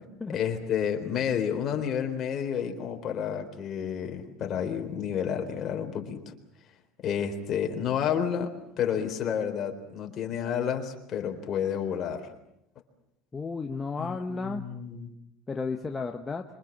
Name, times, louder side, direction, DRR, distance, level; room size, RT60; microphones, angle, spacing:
voice 1, 0.3-6.3 7.0-8.5 8.8-12.3 14.0-15.1, left 8 dB, 35° left, 3 dB, 4.0 m, -30 dB
voice 2, 13.3-14.6 15.5-16.4, left 4 dB, 15° left, 3 dB, 1.2 m, -33 dB
26.5 x 24.0 x 7.4 m, 0.79 s
cardioid pair, 140°, 0 cm